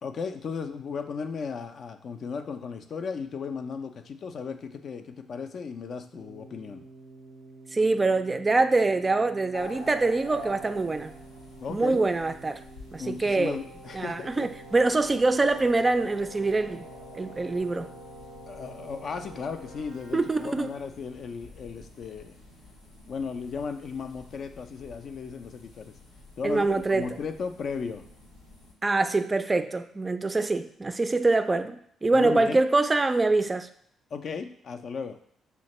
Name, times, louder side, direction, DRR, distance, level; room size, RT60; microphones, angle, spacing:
voice 1, 0.0-6.8 11.6-12.1 13.0-14.5 18.5-22.4 23.1-25.9 26.4-28.1 32.1-32.6 34.1-35.2, left 5 dB, 55° left, 7 dB, 0.3 m, -35 dB
Keyboard (musical), 6.1-21.2, right 1 dB, 90° right, 0.6 m, -48 dB
voice 2, 7.7-11.1 11.7-12.6 12.9-13.6 13.9-16.9 17.1-17.9 20.1-20.8 26.4-27.1 28.8-33.7, right 3 dB, 25° right, 9 dB, 0.3 m, -24 dB
sound 1, 9.5-28.7, left 1 dB, 85° left, 0.6 m, -49 dB
5.6 x 2.2 x 2.9 m, 0.66 s
hypercardioid pair, 45°, 0 cm